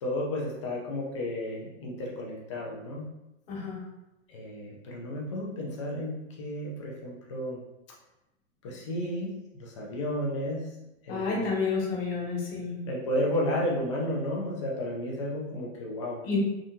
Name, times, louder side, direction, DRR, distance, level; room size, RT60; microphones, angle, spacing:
voice 1, 0.0-3.1 4.3-6.1 6.4-7.6 8.6-10.7 11.0-11.5 12.8-16.2, left 1 dB, 25° left, -2 dB, 0.4 m, -32 dB
voice 2, 3.5-3.8 11.1-12.7 16.2-16.4, left 4 dB, 50° left, -3 dB, 1.3 m, -30 dB
3.6 x 2.5 x 2.7 m, 0.94 s
hypercardioid pair, 160°, 40 cm